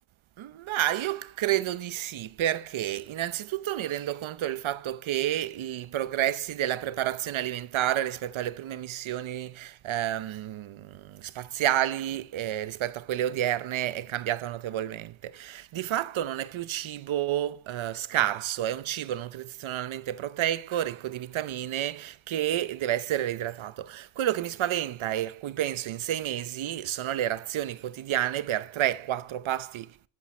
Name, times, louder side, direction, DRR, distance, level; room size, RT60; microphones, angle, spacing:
voice 1, 0.4-29.9, right 12 dB, 90° right, 0.8 m, -30 dB
14.5 x 12.5 x 4.3 m
wide cardioid pair, 150°, 46 cm